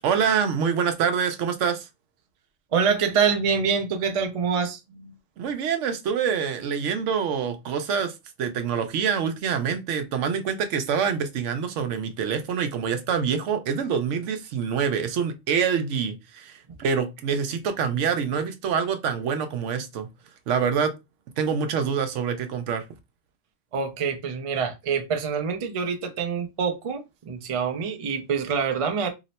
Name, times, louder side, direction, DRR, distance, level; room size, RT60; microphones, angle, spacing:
voice 1, 0.0-1.9 5.4-20.1 20.5-20.9 21.4-22.9, right 6 dB, 80° right, 0.9 m, -26 dB
voice 2, 2.7-5.1 16.7-16.8 23.7-29.1, right 6 dB, 50° right, 0.4 m, -26 dB
2.9 x 2.0 x 4.0 m
omnidirectional pair, 1.3 m